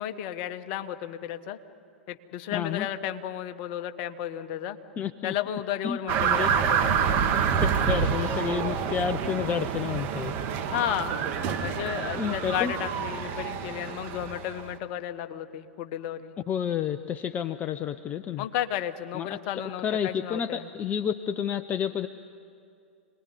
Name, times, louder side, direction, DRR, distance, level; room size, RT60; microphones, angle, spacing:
voice 1, 0.0-1.6 2.1-4.8 5.2-7.1 10.7-11.1 11.6-16.3 18.4-20.7, left 11 dB, 45° left, 9 dB, 1.4 m, -33 dB
voice 2, 2.5-2.9 5.0-5.3 5.8-6.5 7.8-10.4 12.1-12.7 16.5-18.4 19.1-19.4 19.8-22.1, left 8 dB, 25° left, 10 dB, 0.7 m, -30 dB
sound 1, 6.1-14.7, right 7 dB, 35° right, 2.0 m, -27 dB
28.5 x 20.0 x 9.7 m, 2.4 s
figure-of-eight pair, 100°, 7 cm